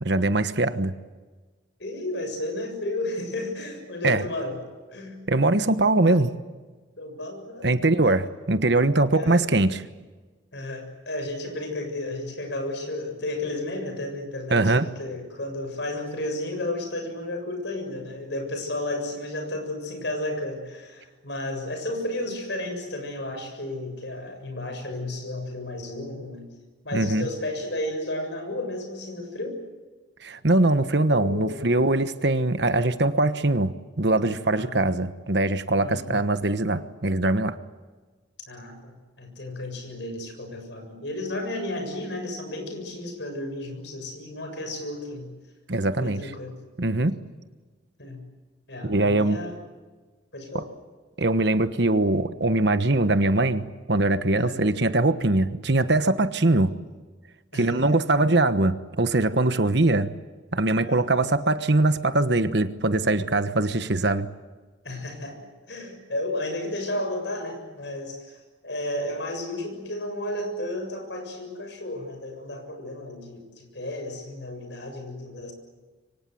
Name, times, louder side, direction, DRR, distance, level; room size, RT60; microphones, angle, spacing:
voice 1, 0.0-0.9 4.0-4.2 5.3-6.3 7.6-9.8 14.5-14.8 26.9-27.3 30.2-33.7 34.0-37.6 45.7-46.3 46.8-47.2 48.8-49.4 50.5-50.6 51.2-56.7 57.5-60.1 60.5-64.3, right 2 dB, 60° right, 11 dB, 1.2 m, -22 dB
voice 2, 1.8-4.6 4.9-5.3 7.0-7.8 9.1-9.4 10.5-26.5 26.8-29.6 31.1-31.7 34.6-35.0 35.8-36.2 38.5-45.3 46.0-46.6 48.0-48.2 48.7-49.6 50.3-50.7 54.3-54.6 57.5-58.0 60.8-61.3 64.8-65.4 65.7-75.5, left 1 dB, 65° left, 5 dB, 7.1 m, -33 dB
26.5 x 24.5 x 7.8 m, 1.3 s
head